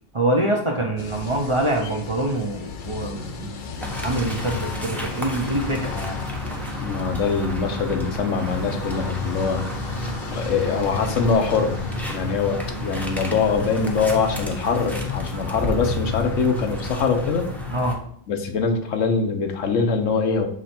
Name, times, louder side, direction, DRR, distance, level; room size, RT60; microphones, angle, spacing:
voice 1, 0.1-6.2 17.7-18.0, right 1 dB, 30° right, 1 dB, 0.6 m, -25 dB
sound 1, 1.0-17.0, left 5 dB, 50° left, 0.7 m, -36 dB
sound 2, 3.8-17.9, left 1 dB, ahead, 0.8 m, -31 dB
voice 2, 6.8-9.7 10.3-11.8 12.1-17.5 18.3-20.5, left 5 dB, 85° left, 5 dB, 1.2 m, -23 dB
7.4 x 3.2 x 4.3 m, 0.63 s
omnidirectional pair, 1.3 m